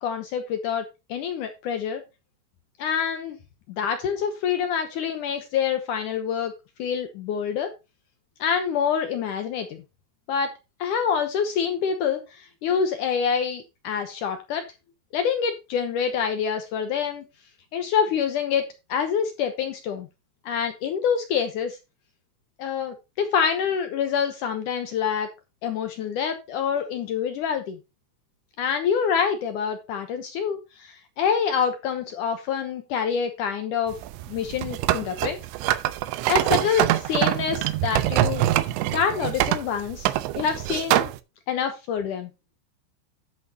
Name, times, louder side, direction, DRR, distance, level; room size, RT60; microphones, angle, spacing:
voice 1, 0.0-2.0 2.8-3.4 3.7-6.5 6.8-7.7 8.4-9.8 10.3-10.5 10.8-14.6 15.1-17.2 17.7-20.1 20.4-21.8 22.6-25.3 25.6-27.8 28.6-33.9 34.3-35.4 36.3-38.5 38.9-41.1 41.5-42.3, left 7 dB, 80° left, 7 dB, 1.8 m, -26 dB
sound 1, 33.9-41.2, right 14 dB, 85° right, 3.0 m, -24 dB
10.5 x 8.5 x 2.9 m, 0.25 s
omnidirectional pair, 5.1 m